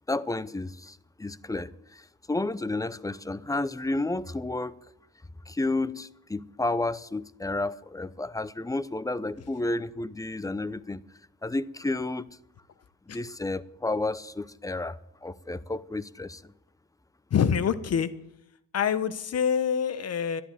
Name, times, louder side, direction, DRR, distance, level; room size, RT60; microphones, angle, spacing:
voice 1, 0.1-4.8 5.5-11.0 11.4-12.4 13.1-16.5, left 2 dB, 10° left, 0.7 m, -31 dB
voice 2, 17.3-18.1 18.7-20.4, left 7 dB, 55° left, 1.2 m, -26 dB
12.5 x 11.0 x 9.3 m
cardioid pair, 90°, 30 cm